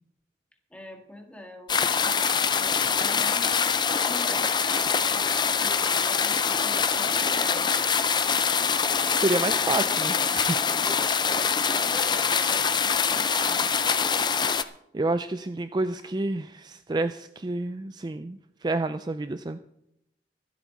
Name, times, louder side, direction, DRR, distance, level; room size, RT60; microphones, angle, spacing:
voice 1, 0.7-8.0 11.6-13.6, left 1 dB, 5° left, 3 dB, 1.9 m, -43 dB
sound 1, 1.7-14.6, left 6 dB, 25° left, 0.5 m, -24 dB
voice 2, 9.2-10.6 14.9-19.6, right 2 dB, 25° right, 10 dB, 0.4 m, -29 dB
24.5 x 8.2 x 4.0 m, 0.83 s
head